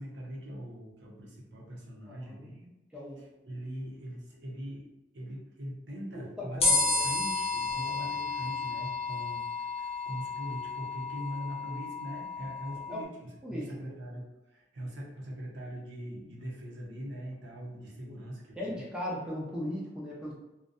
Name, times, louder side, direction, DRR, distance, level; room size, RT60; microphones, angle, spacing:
voice 1, 0.0-2.7 3.2-4.9 5.1-18.8, equal, 90° right, -3 dB, 0.6 m, -42 dB
voice 2, 2.1-2.5 2.9-3.2 6.1-7.1 7.7-7.9 12.7-13.0 13.4-14.0 18.0-18.2 18.6-20.3, left 1 dB, 5° right, -5 dB, 0.5 m, -38 dB
sound 1, 6.6-13.0, left 3 dB, 35° left, 0.6 m, -32 dB
2.5 x 2.1 x 2.4 m, 0.98 s
head